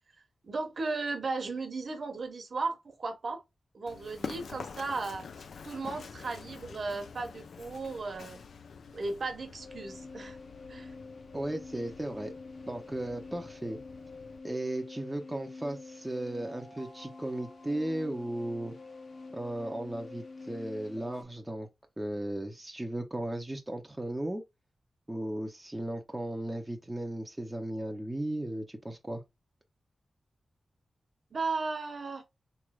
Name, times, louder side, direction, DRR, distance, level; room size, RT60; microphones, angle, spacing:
voice 1, 0.4-3.4 3.7-5.3 5.6-8.4 8.9-10.4 10.7-10.9 31.3-32.3, right 3 dB, 50° right, 0.8 m, -35 dB
Run, 3.9-14.4, left 5 dB, 80° left, 0.3 m, -47 dB
sound 1, 9.6-21.2, left 3 dB, 50° left, 0.8 m, -47 dB
voice 2, 11.3-12.3 12.7-13.8 14.4-18.8 19.3-21.7 22.0-24.4 25.1-29.2, right 1 dB, 10° right, 0.5 m, -36 dB
4.3 x 3.1 x 2.3 m
wide cardioid pair, 165°, 0 cm